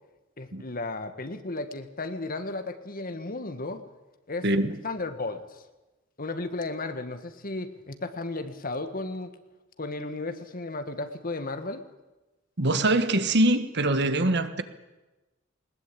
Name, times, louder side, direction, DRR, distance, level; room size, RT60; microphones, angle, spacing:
voice 1, 0.4-3.8 4.3-4.5 4.8-5.7 6.2-9.3 9.8-11.8, left 2 dB, 45° left, 1.7 m, -34 dB
voice 2, 4.4-4.8 12.6-14.6, right 1 dB, 55° right, 1.5 m, -23 dB
20.5 x 20.5 x 8.6 m
head